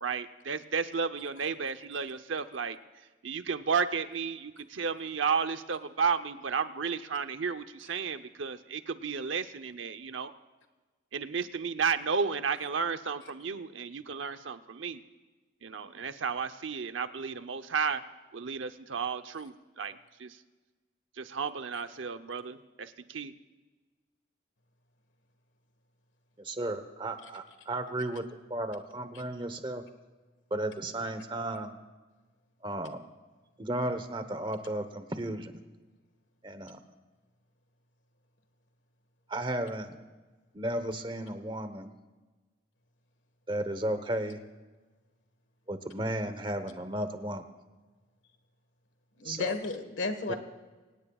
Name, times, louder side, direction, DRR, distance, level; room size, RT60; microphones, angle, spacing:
voice 1, 0.0-2.8 3.2-10.3 11.1-15.0 15.6-18.0 18.3-20.4 21.2-23.3, right 5 dB, 85° right, 9 dB, 0.8 m, -33 dB
voice 2, 26.4-28.2 28.5-29.8 30.5-31.8 32.6-33.0 33.6-35.6 36.4-36.8 39.3-40.0 40.5-41.9 43.5-44.4 45.7-47.4 49.2-49.6 50.3-50.4, right 1 dB, 25° right, 9 dB, 1.1 m, -34 dB
voice 3, 49.2-50.4, left 3 dB, 75° left, 8 dB, 1.6 m, -33 dB
24.5 x 19.0 x 2.4 m, 1.3 s
head